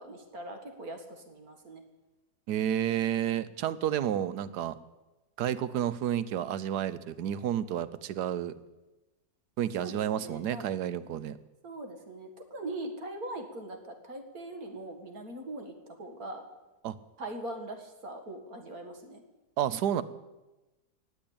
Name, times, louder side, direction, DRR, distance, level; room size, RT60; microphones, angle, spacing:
voice 1, 0.0-1.8 9.8-10.7 11.6-16.4 17.2-19.2, right 1 dB, 65° right, 4 dB, 2.4 m, -41 dB
voice 2, 2.5-4.8 5.4-8.5 9.6-11.4 16.8-16.9 19.6-20.0, right 10 dB, 90° right, 15 dB, 1.3 m, -30 dB
19.0 x 8.0 x 8.7 m, 1.1 s
omnidirectional pair, 1.7 m